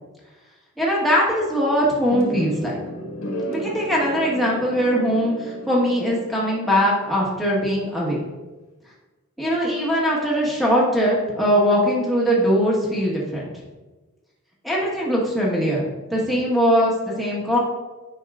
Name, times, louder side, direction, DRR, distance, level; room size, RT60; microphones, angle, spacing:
voice 1, 0.8-2.8 3.5-8.2 9.4-13.5 14.6-17.6, equal, ahead, -5 dB, 1.4 m, -21 dB
sound 1, 2.1-7.2, right 1 dB, 85° left, 1.6 m, -33 dB
9.3 x 5.3 x 2.5 m, 1.2 s
head